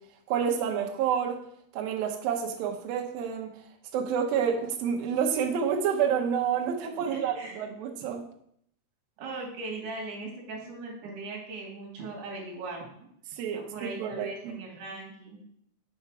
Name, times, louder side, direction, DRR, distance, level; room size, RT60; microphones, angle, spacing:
voice 1, 0.3-1.4 1.7-3.5 3.9-8.2 13.3-14.6, right 7 dB, 80° right, 2.1 m, -29 dB
voice 2, 6.9-7.6 9.2-13.1 13.5-15.4, right 3 dB, 50° right, 3.1 m, -39 dB
6.9 x 5.7 x 4.8 m
omnidirectional pair, 5.4 m